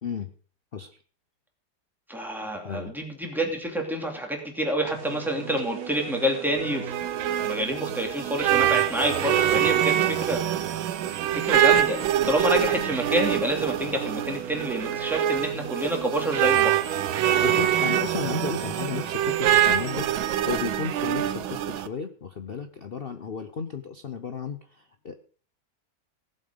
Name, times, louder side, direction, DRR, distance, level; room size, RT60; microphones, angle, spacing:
voice 1, 0.0-0.3 0.7-1.0 2.4-3.0 17.4-25.1, left 6 dB, 70° left, 8 dB, 0.5 m, -34 dB
voice 2, 2.1-10.8 11.3-16.8, right 1 dB, ahead, 1 dB, 2.7 m, -28 dB
sound 1, 4.9-20.4, right 7 dB, 55° right, 1.2 m, -39 dB
sound 2, 6.6-21.9, right 11 dB, 85° right, 1.6 m, -25 dB
17.5 x 7.7 x 5.2 m, 0.43 s
omnidirectional pair, 2.1 m